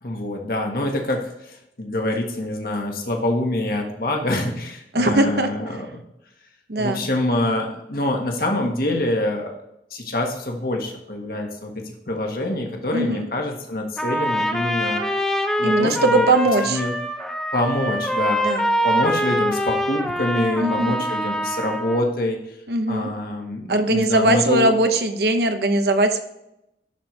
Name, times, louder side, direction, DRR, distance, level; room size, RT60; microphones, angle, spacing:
voice 1, 0.0-5.9 6.8-9.6 9.9-15.0 15.6-16.3 16.7-16.9 17.5-18.5 18.8-22.6 22.9-24.7, left 1 dB, 55° left, 2 dB, 1.5 m, -25 dB
voice 2, 4.9-5.5 6.7-7.0 12.9-13.3 15.6-16.8 18.4-18.7 20.6-21.0 22.7-23.1 23.7-26.2, right 2 dB, 65° right, 7 dB, 0.9 m, -20 dB
Trumpet, 14.0-22.0, equal, 5° left, 0.6 m, -24 dB
11.0 x 4.5 x 3.3 m, 0.85 s
head